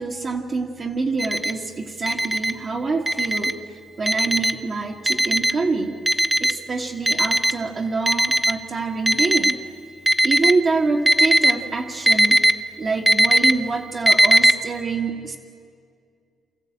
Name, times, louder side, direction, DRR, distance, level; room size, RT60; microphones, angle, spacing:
voice 1, 0.0-6.0 6.4-9.6 10.2-12.4 12.8-15.4, right 3 dB, 45° right, -2 dB, 1.7 m, -26 dB
Alarm, 1.2-1.5 2.1-2.5 3.1-3.5 4.1-4.5 5.1-5.5 6.1-6.5 7.1-7.5 8.1-8.5 9.1-9.5 10.1-10.5 11.1-11.5 12.1-12.5 13.1-13.5 14.1-14.5, right 1 dB, 5° right, 0.8 m, -17 dB
28.5 x 14.0 x 8.8 m, 2.3 s
cardioid pair, 90°, 0 cm